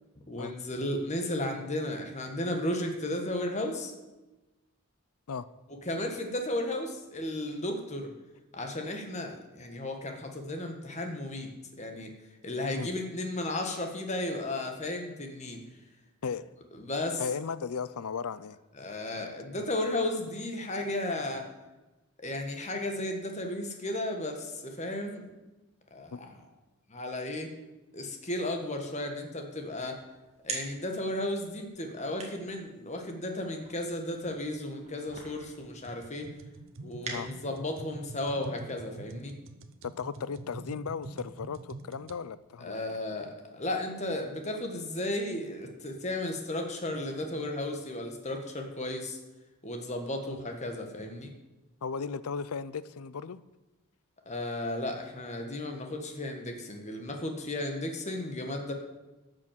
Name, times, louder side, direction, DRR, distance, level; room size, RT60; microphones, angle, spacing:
voice 1, 0.3-3.9 5.7-8.1 8.5-12.1 12.4-15.6 16.7-17.2 18.8-21.5 22.2-25.3 25.9-26.3 26.9-27.5 27.9-30.0 30.4-36.3 36.8-39.3 42.6-49.2 49.6-51.3 54.2-58.7, left 1 dB, 30° left, 4 dB, 1.5 m, -34 dB
voice 2, 17.2-18.6 19.1-19.3 26.1-26.2 37.1-37.3 39.8-43.0 50.3-50.4 51.8-53.4, left 5 dB, 80° left, 16 dB, 0.5 m, -36 dB
sound 1, 29.5-37.8, right 4 dB, 30° right, 2.0 m, -46 dB
sound 2, 35.8-42.2, right 2 dB, 60° right, 0.7 m, -46 dB
12.0 x 6.2 x 7.5 m, 1.1 s
head